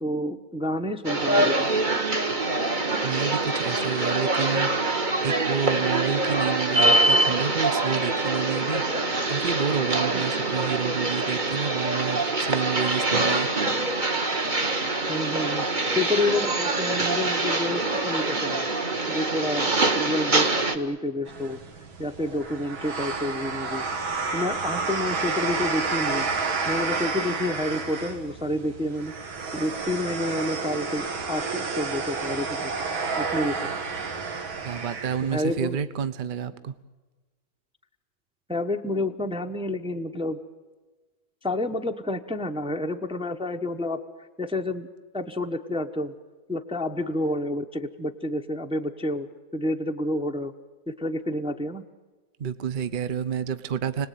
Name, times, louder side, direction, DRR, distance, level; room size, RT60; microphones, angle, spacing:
voice 1, 0.0-1.7 10.1-10.2 15.1-15.7 15.9-18.7 19.1-21.6 22.0-23.8 24.1-26.3 26.7-29.1 29.5-32.7 33.2-33.7 35.2-35.8 38.5-40.4 41.4-44.0 44.4-44.9 45.1-46.1 46.5-49.3 49.5-50.5 50.9-51.8, left 1 dB, 5° right, 5 dB, 0.5 m, -29 dB
sound 1, 1.0-20.8, right 2 dB, 25° right, 1.5 m, -24 dB
voice 2, 3.0-4.7 5.2-8.8 9.3-13.5 34.6-36.7 52.4-54.1, right 7 dB, 40° right, 13 dB, 0.7 m, -29 dB
sound 2, 21.3-35.5, right 4 dB, 85° right, 2.9 m, -30 dB
29.5 x 19.5 x 9.3 m, 1.3 s
omnidirectional pair, 2.1 m